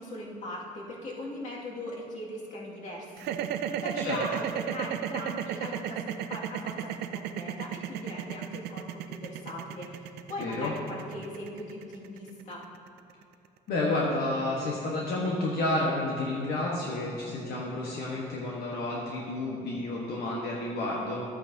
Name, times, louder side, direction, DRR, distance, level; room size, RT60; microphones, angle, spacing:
voice 1, 0.0-12.6, left 1 dB, 45° left, -4 dB, 2.2 m, -40 dB
sound 1, 3.2-13.3, right 10 dB, 75° right, 0.5 m, -34 dB
voice 2, 10.4-10.7 13.7-21.2, left 2 dB, 70° left, -4 dB, 1.3 m, -30 dB
12.5 x 8.8 x 2.8 m, 2.6 s
cardioid pair, 110°, 17 cm